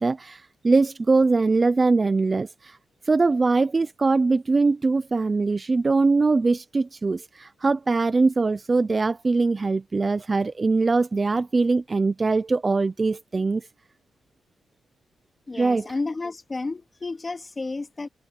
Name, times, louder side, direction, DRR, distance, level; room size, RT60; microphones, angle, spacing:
voice 1, 0.0-2.8 3.0-13.7 15.6-15.9, right 3 dB, 25° right, 0.5 m, -22 dB
voice 2, 15.5-18.1, left 3 dB, 20° left, 2.3 m, -31 dB
cardioid pair, 135°, 0 cm